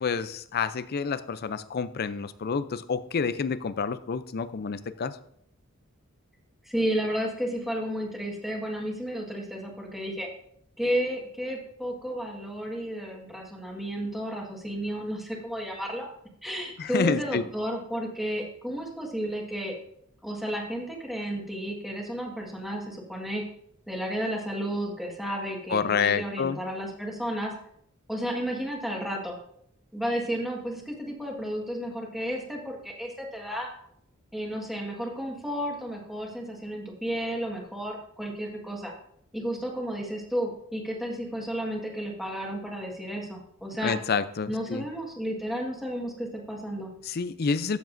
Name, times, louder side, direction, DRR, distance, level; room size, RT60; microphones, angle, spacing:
voice 1, 0.0-5.2 16.8-17.4 25.7-26.6 43.8-44.9 47.1-47.8, left 5 dB, 45° left, 14 dB, 0.5 m, -28 dB
voice 2, 6.6-10.3 10.8-16.1 16.4-19.8 20.2-23.4 23.9-27.5 28.1-29.4 29.9-33.7 34.3-38.9 39.3-43.9 44.5-46.9, equal, ahead, 0 dB, 1.6 m, -32 dB
13.5 x 7.2 x 2.6 m, 0.71 s
head